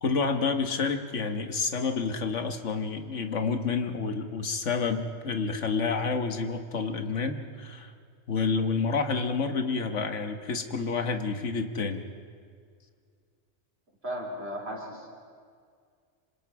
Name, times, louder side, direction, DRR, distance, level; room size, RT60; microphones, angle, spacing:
voice 1, 0.0-7.9 8.3-12.0, left 4 dB, 85° left, 6 dB, 1.7 m, -29 dB
voice 2, 14.0-15.1, equal, 60° right, -1 dB, 3.9 m, -35 dB
27.0 x 26.0 x 4.8 m, 2.1 s
omnidirectional pair, 1.2 m